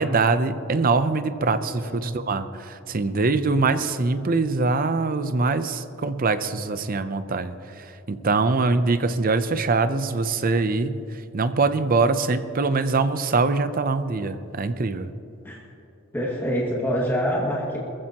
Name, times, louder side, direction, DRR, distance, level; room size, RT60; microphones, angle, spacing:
voice 1, 0.0-11.0 11.3-15.1, right 3 dB, 45° right, 11 dB, 0.6 m, -23 dB
voice 2, 1.5-2.1 15.4-15.6 16.1-17.8, equal, 10° left, -5 dB, 2.1 m, -26 dB
21.5 x 15.0 x 3.0 m, 2.8 s
head